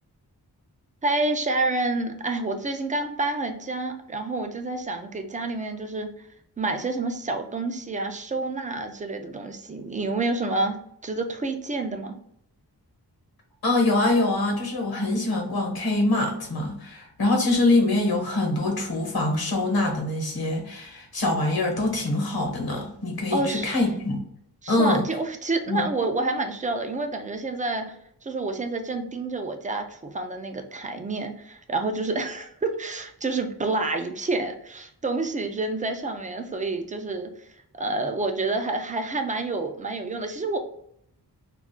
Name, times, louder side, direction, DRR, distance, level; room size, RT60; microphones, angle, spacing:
voice 1, 1.0-6.2 6.6-12.1 23.3-23.8 24.6-28.0 28.2-37.3 37.8-40.6, right 2 dB, 20° right, 6 dB, 0.3 m, -28 dB
voice 2, 13.6-24.2 24.7-25.0 25.7-25.9, left 2 dB, 60° left, 1 dB, 1.0 m, -24 dB
2.4 x 2.3 x 3.6 m, 0.69 s
wide cardioid pair, 115°, 40 cm